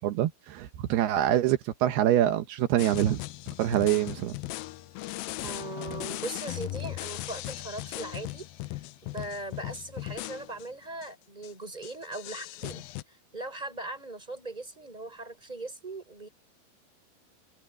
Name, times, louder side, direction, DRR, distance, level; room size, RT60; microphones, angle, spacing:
voice 1, 0.0-3.2 3.6-4.4, right 12 dB, 80° right, 3.1 m, -25 dB
sound 1, 2.8-10.7 11.0-11.1 11.4-11.5 11.8-13.0, left 17 dB, 80° left, 2.2 m, -38 dB
voice 2, 5.4-8.8 9.1-16.3, right 2 dB, 10° right, 5.8 m, -39 dB
omnidirectional pair, 4.6 m